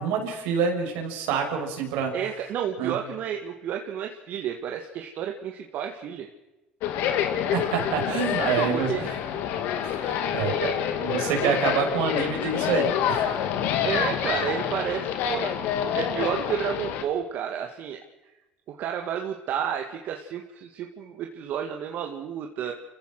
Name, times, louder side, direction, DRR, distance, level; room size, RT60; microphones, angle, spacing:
voice 1, 0.0-2.1 2.8-3.0 7.5-9.2 9.8-13.5, right 6 dB, 85° right, 3 dB, 5.9 m, -27 dB
voice 2, 2.1-6.3 8.4-9.0 11.4-11.6 13.8-15.5 16.0-18.0 18.7-22.7, right 8 dB, 65° right, 3 dB, 2.1 m, -31 dB
sound 1, 6.8-17.0, left 9 dB, 75° left, 2.5 m, -27 dB
29.5 x 15.5 x 6.2 m, 1.0 s
supercardioid pair, 85°, 3 cm